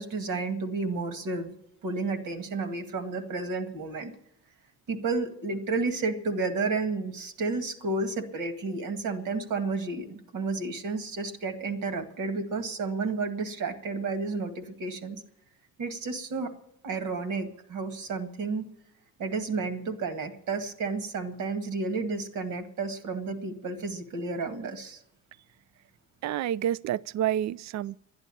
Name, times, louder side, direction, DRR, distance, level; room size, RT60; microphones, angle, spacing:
voice 1, 0.0-1.5 1.8-4.1 4.9-15.2 15.8-16.5 16.8-18.7 19.2-25.0, right 3 dB, 85° right, 2.0 m, -31 dB
voice 2, 26.2-28.0, right 11 dB, 65° right, 0.4 m, -29 dB
11.5 x 10.5 x 9.8 m
cardioid pair, 90°, 30 cm